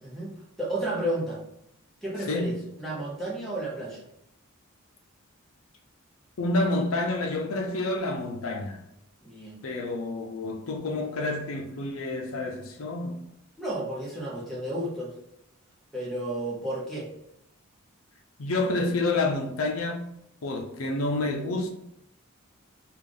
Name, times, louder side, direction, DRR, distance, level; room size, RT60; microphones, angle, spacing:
voice 1, 0.0-1.4 2.0-4.1 9.2-9.6 13.6-15.1 15.9-17.1, right 1 dB, ahead, 1.0 m, -32 dB
voice 2, 6.4-8.8 9.6-13.2 18.4-20.0 20.4-21.7, left 2 dB, 75° left, 0.5 m, -28 dB
3.3 x 2.4 x 3.8 m
head